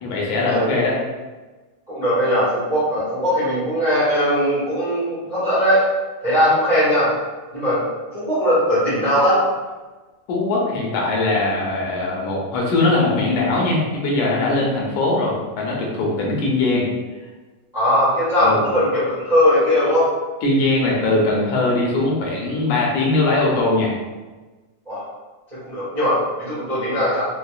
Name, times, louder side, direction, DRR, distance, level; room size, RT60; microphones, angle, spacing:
voice 1, 0.0-1.0 10.3-16.9 18.4-18.6 20.4-23.9, left 2 dB, 80° left, -3 dB, 2.1 m, -20 dB
voice 2, 1.9-5.8 6.2-7.1 7.5-7.8 8.1-9.4 17.7-20.1 24.9-25.0 25.5-27.2, equal, 70° right, -12 dB, 0.4 m, -19 dB
5.5 x 2.1 x 2.4 m, 1.2 s
omnidirectional pair, 3.4 m